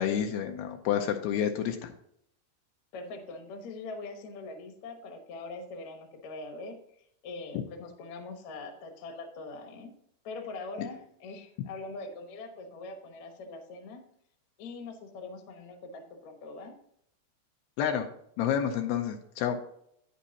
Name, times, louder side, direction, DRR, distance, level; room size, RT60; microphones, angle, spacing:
voice 1, 0.0-1.9 10.8-10.9 17.8-18.1 18.4-19.6, left 9 dB, 80° left, 5 dB, 2.5 m, -29 dB
voice 2, 2.9-6.8 7.2-9.9 10.2-14.0 14.6-16.7, left 3 dB, 65° left, 4 dB, 1.8 m, -42 dB
9.6 x 8.3 x 2.8 m, 0.72 s
omnidirectional pair, 4.8 m